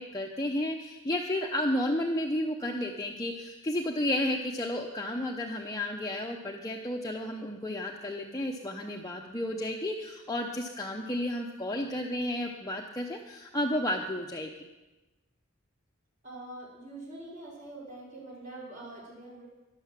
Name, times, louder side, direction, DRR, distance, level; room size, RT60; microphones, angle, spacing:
voice 1, 0.0-14.5, left 1 dB, 15° left, 0 dB, 0.8 m, -32 dB
voice 2, 16.2-19.5, right 2 dB, 40° right, -4 dB, 4.4 m, -44 dB
12.0 x 11.5 x 7.4 m, 1.1 s
head